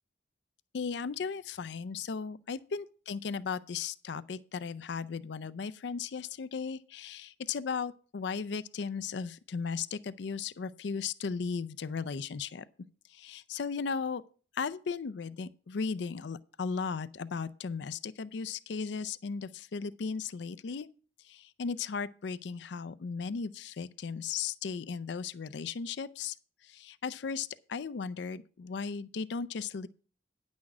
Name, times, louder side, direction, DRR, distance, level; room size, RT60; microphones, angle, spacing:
voice 1, 0.7-12.6 13.1-14.2 14.5-20.9 21.3-26.3 26.7-29.9, left 5 dB, 70° left, 0.4 m, -36 dB
9.7 x 6.3 x 6.0 m
head